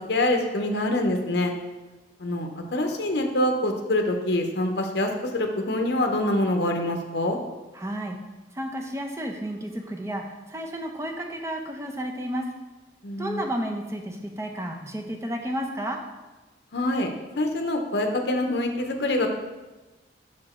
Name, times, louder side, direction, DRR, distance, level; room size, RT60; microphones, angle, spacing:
voice 1, 0.0-1.5 2.2-7.4 13.0-13.4 16.7-17.1 17.4-19.3, left 1 dB, 60° left, 4 dB, 0.7 m, -25 dB
voice 2, 7.7-8.2 8.5-12.5 13.2-16.0, equal, 15° right, 2 dB, 0.6 m, -32 dB
5.7 x 4.9 x 4.3 m, 1.1 s
head